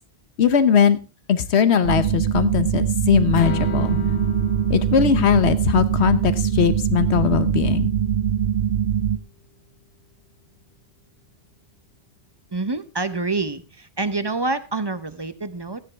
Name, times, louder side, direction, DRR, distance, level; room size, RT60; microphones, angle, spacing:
voice 1, 0.4-1.0 1.3-4.0 4.7-7.9, left 8 dB, 90° left, 13 dB, 1.2 m, -19 dB
sound 1, 1.8-9.2, right 9 dB, 65° right, 1.0 m, -22 dB
Strum, 3.4-9.6, left 5 dB, 65° left, 1.4 m, -35 dB
voice 2, 12.5-15.8, right 3 dB, 30° right, 12 dB, 0.6 m, -27 dB
14.5 x 10.0 x 3.4 m, 0.30 s
omnidirectional pair, 1.1 m